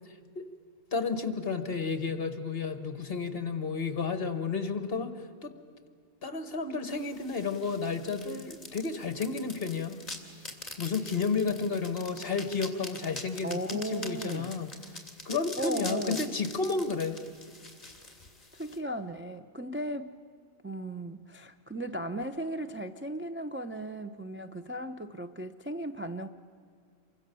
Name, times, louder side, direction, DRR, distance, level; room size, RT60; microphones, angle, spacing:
voice 1, 0.9-5.1 5.4-5.5 6.2-10.0 10.8-14.7 15.2-17.2, left 4 dB, 50° left, 9 dB, 1.7 m, -32 dB
sound 1, 6.9-18.8, left 2 dB, 30° left, 2.6 m, -44 dB
voice 2, 13.4-14.5 15.6-16.3 18.5-20.2 20.6-26.3, right 1 dB, 15° right, 5 dB, 0.5 m, -36 dB
28.5 x 23.5 x 6.9 m, 2.2 s
omnidirectional pair, 1.3 m